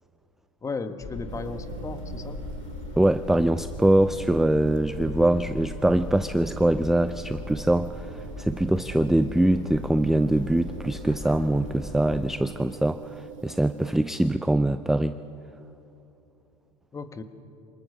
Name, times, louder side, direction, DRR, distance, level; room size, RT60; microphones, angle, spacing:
voice 1, 0.6-2.5 16.9-17.2, left 4 dB, 20° left, 9 dB, 1.5 m, -35 dB
sound 1, 1.0-12.4, left 2 dB, 40° left, 3.1 m, -38 dB
sound 2, 1.3-14.0, right 8 dB, 85° right, 2.1 m, -45 dB
voice 2, 3.0-15.2, right 1 dB, ahead, 12 dB, 0.4 m, -23 dB
26.0 x 19.5 x 6.6 m, 2.7 s
supercardioid pair, 110°, 16 cm